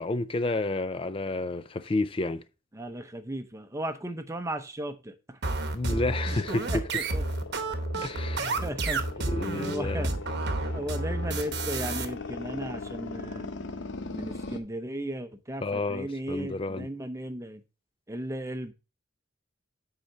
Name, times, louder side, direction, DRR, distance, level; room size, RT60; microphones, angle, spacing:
voice 1, 0.0-2.4 5.7-6.7 8.0-8.6 9.3-10.1 15.6-16.9, left 2 dB, 25° left, 0.4 m, -30 dB
voice 2, 2.7-5.4 5.9-6.0 6.7-7.2 8.6-9.0 9.5-10.1 10.7-13.5 14.1-17.6 18.1-18.7, right 1 dB, 15° right, 0.7 m, -36 dB
sound 1, 5.4-12.1, right 2 dB, 60° right, 1.0 m, -30 dB
sound 2, 6.0-14.6, left 3 dB, 65° left, 0.9 m, -40 dB
8.0 x 4.9 x 4.3 m
head